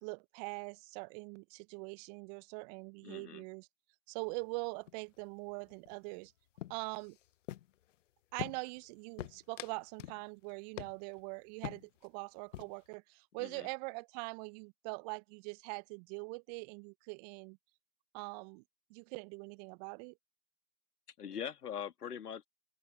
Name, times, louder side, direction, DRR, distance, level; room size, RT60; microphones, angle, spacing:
voice 1, 0.0-3.7 4.1-6.3 6.7-7.2 8.3-17.6 18.1-18.6 18.9-20.1, right 30 dB, 25° right, 0.9 m, -43 dB
voice 2, 3.0-3.4 13.4-13.7 21.2-22.5, left 8 dB, 70° left, 2.2 m, -42 dB
sound 1, 4.2-4.6 4.9-5.2 5.5-6.3 6.6-7.9 8.4-8.9 9.2-10.2 10.5-10.6 10.8-11.2 11.6-12.1 12.4-12.9, left 13 dB, 50° left, 0.8 m, -45 dB
open air
figure-of-eight pair, 115°, 48 cm